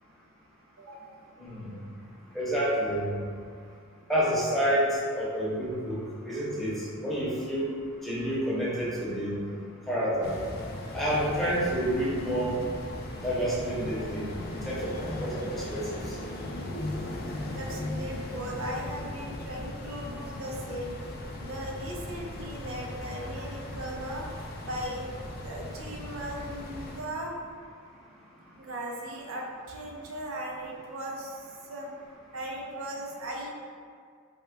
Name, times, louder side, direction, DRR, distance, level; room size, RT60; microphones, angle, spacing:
voice 1, 0.8-1.2 16.4-16.5 17.5-21.1 21.4-24.2 24.6-25.0 25.4-27.4 28.6-31.9 32.3-33.5, equal, 85° right, -1 dB, 0.5 m, -38 dB
voice 2, 2.3-3.0 4.1-6.0 6.2-6.8 7.0-7.7 8.0-9.3 9.9-10.4 10.9-12.6 13.2-14.2 14.7-16.0, equal, ahead, -9 dB, 0.7 m, -28 dB
sound 1, 10.2-27.0, left 1 dB, 50° left, 0.4 m, -38 dB
3.6 x 2.1 x 3.3 m, 2.1 s
head